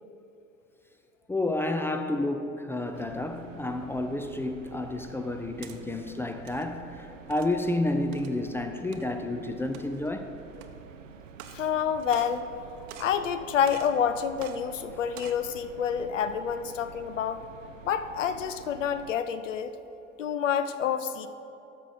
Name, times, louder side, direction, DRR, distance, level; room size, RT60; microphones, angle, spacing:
voice 1, 1.3-10.3, left 2 dB, 5° left, 6 dB, 0.3 m, -30 dB
sound 1, 2.9-19.1, right 6 dB, 85° right, 0.5 m, -48 dB
sound 2, 5.5-5.8 6.3-6.6 7.3-7.6 8.1-8.4 8.9-9.1 9.6-10.1 10.6-10.7 11.3-11.7 12.0-12.6 12.9-13.2 13.7-14.0 14.4-14.6 15.0-15.4, right 11 dB, 50° right, 0.7 m, -46 dB
voice 2, 11.5-12.5 13.0-17.5 17.8-19.7 20.2-21.3, left 8 dB, 80° left, 12 dB, 0.5 m, -28 dB
12.5 x 5.7 x 4.1 m, 2.8 s
figure-of-eight pair, 65°, 37 cm